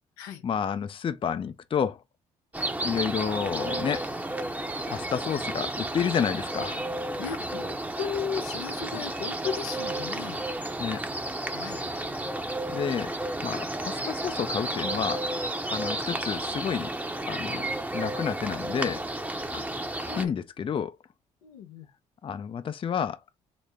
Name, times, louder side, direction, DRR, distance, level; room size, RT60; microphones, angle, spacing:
voice 1, 0.4-2.0 2.8-4.1 4.9-6.8 10.8-11.0 12.7-13.1 13.4-15.2 15.7-16.9 17.3-17.7 17.9-19.0 20.2-21.0 22.2-23.2, left 7 dB, 35° left, 0.5 m, -30 dB
sound 1, 2.5-20.3, right 1 dB, 10° right, 0.8 m, -32 dB
voice 2, 7.2-10.4 11.5-11.8 19.5-19.7 20.0-20.3 21.4-21.9, left 7 dB, 85° left, 0.7 m, -36 dB
4.0 x 2.1 x 3.3 m
hypercardioid pair, 55°, 15 cm